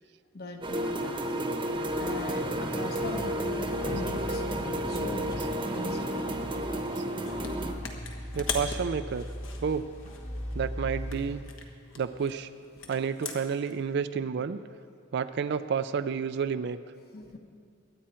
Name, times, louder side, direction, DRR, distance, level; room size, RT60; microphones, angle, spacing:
voice 1, 0.3-1.1 2.0-6.2 12.8-12.9 17.1-17.4, left 3 dB, 50° left, 4 dB, 1.1 m, -41 dB
sound 1, 0.6-7.7, right 1 dB, 25° right, 1.0 m, -31 dB
sound 2, 1.9-11.4, equal, 35° left, 1.4 m, -40 dB
sound 3, 7.2-7.5 7.8-10.6 11.1-13.7, left 5 dB, 70° left, 1.3 m, -40 dB
voice 2, 8.3-9.3 9.6-9.9 10.5-11.4 12.0-12.5 12.9-14.6 15.1-16.8, right 6 dB, 60° right, 11 dB, 0.4 m, -30 dB
23.0 x 8.8 x 4.4 m, 2.2 s
head